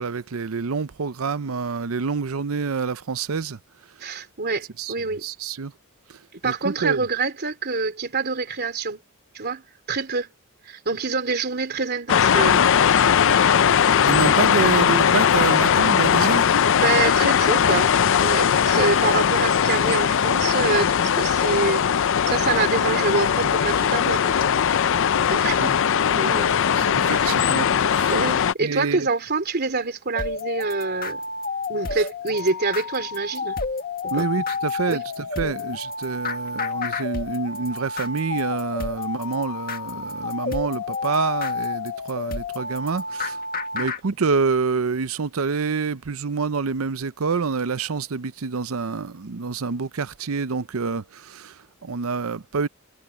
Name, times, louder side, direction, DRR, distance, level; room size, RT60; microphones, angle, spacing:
voice 1, 0.0-3.6 4.8-4.9 5.2-5.7 6.1-6.2 6.4-7.0 14.1-16.5 18.6-18.7 25.6-25.8 26.8-28.1 28.6-29.1 34.1-43.4 43.7-52.7, right 4 dB, 70° right, 0.7 m, -27 dB
voice 2, 4.0-5.2 6.3-9.0 9.3-10.3 10.6-12.7 13.2-13.4 16.7-21.8 22.3-24.4 25.3-25.7 26.1-26.5 27.0-27.3 28.1-31.2 31.7-33.6 34.0-34.3 34.9-35.1 35.4-35.5 43.7-43.8, right 4 dB, 50° right, 3.1 m, -26 dB
sound 1, 12.1-28.5, left 8 dB, 60° left, 0.5 m, -19 dB
sound 2, 30.2-44.0, left 4 dB, 45° left, 1.8 m, -30 dB
head